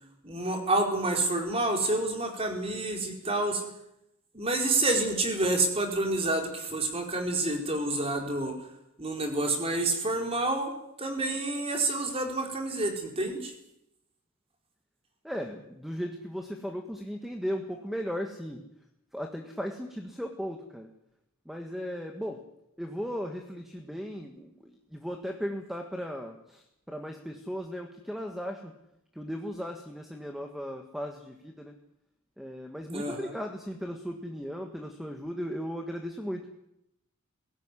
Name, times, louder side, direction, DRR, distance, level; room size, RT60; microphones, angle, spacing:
voice 1, 0.2-3.6 4.3-8.5 9.0-10.7 11.0-13.5 32.9-33.3, right 2 dB, 30° right, 3 dB, 4.5 m, -28 dB
voice 2, 15.2-18.6 19.1-20.9 21.5-22.4 22.8-28.7 29.2-31.7 32.4-36.4, equal, ahead, 3 dB, 1.7 m, -36 dB
21.5 x 17.0 x 9.9 m, 0.82 s
head